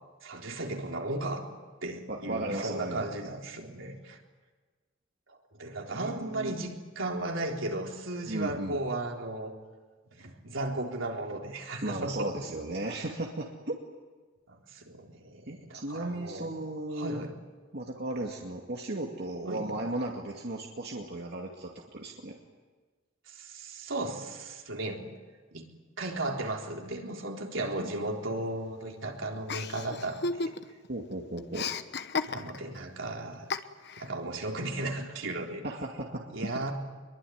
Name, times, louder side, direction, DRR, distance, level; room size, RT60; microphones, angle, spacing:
voice 1, 0.2-1.5 1.8-4.2 5.3-9.5 10.2-12.3 14.5-16.5 16.9-17.3 19.5-19.6 23.3-25.0 25.5-25.7 26.0-30.5 32.3-33.5 34.0-35.7 36.3-36.7, right 2 dB, 75° right, 1 dB, 3.8 m, -35 dB
voice 2, 2.1-3.1 5.9-6.6 8.3-8.8 11.8-13.8 15.5-17.2 17.7-22.4 30.9-31.7 35.6-36.3, right 1 dB, 55° right, 0 dB, 2.3 m, -35 dB
Chuckle chortle, 29.5-30.9 31.1-32.8 33.5-34.1, left 4 dB, 60° left, 1.1 m, -34 dB
24.5 x 23.0 x 9.5 m, 1.4 s
head